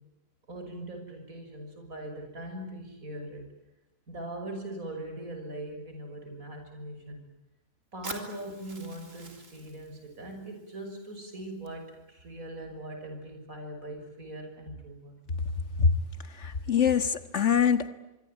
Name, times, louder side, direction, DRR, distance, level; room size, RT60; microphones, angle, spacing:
voice 1, 0.5-3.5 4.1-7.3 7.9-15.2, right 1 dB, 85° right, 4 dB, 7.0 m, -41 dB
Fire, 8.0-12.0, right 2 dB, 70° right, 4.0 m, -46 dB
voice 2, 16.4-17.9, left 7 dB, 60° left, 11 dB, 1.8 m, -24 dB
25.0 x 24.5 x 9.3 m, 0.97 s
omnidirectional pair, 1.4 m